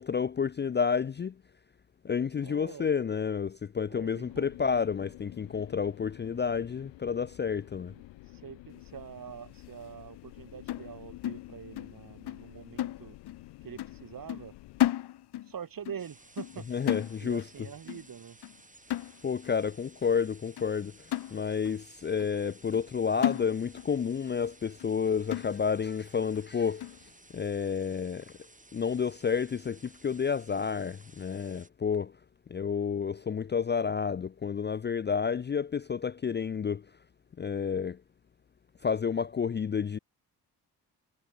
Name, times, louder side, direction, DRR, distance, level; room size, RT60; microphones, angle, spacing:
voice 1, 0.0-1.4 2.0-7.9 16.7-17.4 19.2-27.0 27.3-28.3 28.7-32.2 32.5-36.9 37.4-38.0 38.8-40.0, left 6 dB, 25° left, 0.5 m, -30 dB
voice 2, 2.4-3.0 3.9-4.5 7.9-13.2 13.6-14.5 15.4-16.7 17.2-18.4, right 8 dB, 50° right, 1.9 m, -45 dB
sound 1, 4.2-14.9, left 17 dB, 85° left, 1.8 m, -50 dB
sound 2, 10.7-12.0 12.3-12.5 12.8-13.5 13.8-14.0 14.3-15.6 15.9-16.1 16.4-16.6 16.9-17.6 17.9-18.1 18.4-18.6 18.9-19.5 20.0-20.1 20.6-20.7 21.1-21.8 22.2-22.3 22.7-22.9 23.2-24.0 24.3-24.4 24.8-24.9 25.3-25.9 26.4-26.5 26.8-27.0, left 13 dB, 65° left, 0.9 m, -33 dB
sound 3, 16.0-31.7, right 2 dB, 15° right, 2.1 m, -57 dB
supercardioid pair, 50°, 43 cm